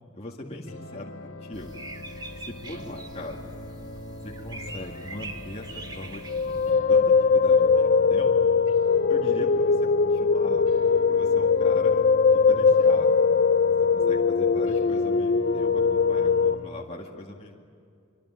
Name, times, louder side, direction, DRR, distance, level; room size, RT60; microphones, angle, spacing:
voice 1, 0.1-1.9 2.4-3.4 4.2-8.5 9.1-10.7 11.1-13.1 13.9-17.6, left 1 dB, 30° left, -1 dB, 2.1 m, -41 dB
sound 1, 0.7-16.7, left 1 dB, 80° left, 1.8 m, -42 dB
sound 2, 1.5-6.7, right 2 dB, 20° right, 2.3 m, -42 dB
sound 3, 6.3-16.5, left 5 dB, 45° left, 0.6 m, -21 dB
24.5 x 24.5 x 9.2 m, 2.3 s
head